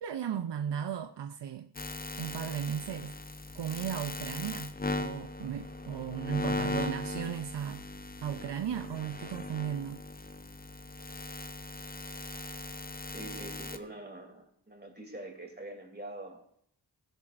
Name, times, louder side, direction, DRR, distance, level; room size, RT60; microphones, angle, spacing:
voice 1, 0.0-1.7 2.2-3.2 3.5-7.8 8.2-10.0, right 9 dB, 75° right, 0.6 m, -36 dB
sound 1, 1.7-13.8, left 2 dB, 20° left, 0.8 m, -38 dB
voice 2, 13.1-16.5, right 1 dB, 25° right, 2.9 m, -44 dB
15.5 x 10.5 x 2.5 m
wide cardioid pair, 65°, 43 cm